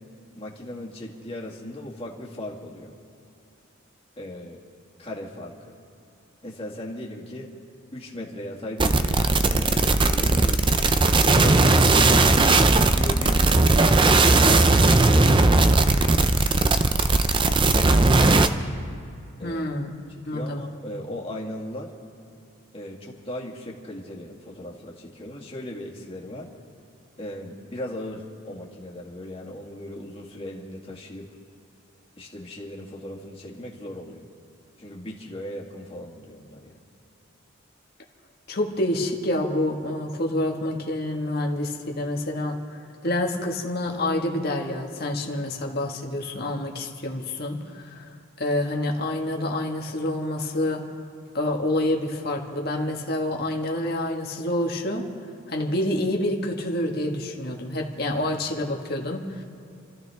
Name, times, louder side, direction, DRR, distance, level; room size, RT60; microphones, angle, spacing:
voice 1, 0.3-2.9 4.2-4.6 5.0-5.7 6.4-7.5 7.9-10.8 11.2-12.4 12.8-14.0 14.4-17.1 19.4-19.6 20.3-21.9 22.7-26.5 27.2-31.3 32.2-34.3 34.8-36.8, left 1 dB, 30° left, -3 dB, 2.1 m, -37 dB
sound 1, 8.8-18.5, right 2 dB, 25° right, 0.5 m, -18 dB
voice 2, 19.4-19.9 20.3-20.6 38.5-50.8 51.3-55.1 55.5-59.4, left 1 dB, 50° left, 1 dB, 1.6 m, -27 dB
28.5 x 14.0 x 3.5 m, 2.5 s
head